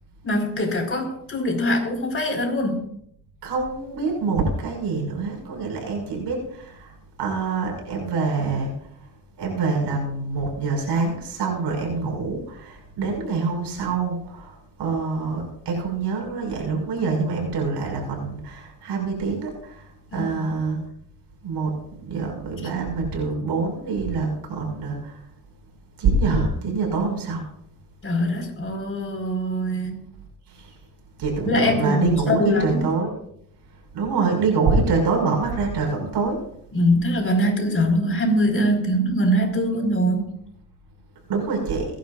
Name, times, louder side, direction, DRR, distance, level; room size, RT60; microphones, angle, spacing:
voice 1, 0.2-2.9 20.1-20.5 28.0-30.0 31.4-32.8 36.7-40.4, equal, 30° left, 3 dB, 4.8 m, -23 dB
voice 2, 3.4-8.7 9.4-19.8 20.1-20.8 21.4-21.8 22.1-25.2 26.0-27.5 30.5-30.7 31.2-33.1 33.9-36.4 41.3-41.9, right 4 dB, 75° right, 1 dB, 5.9 m, -25 dB
22.5 x 11.0 x 2.5 m, 0.69 s
cardioid pair, 85°, 41 cm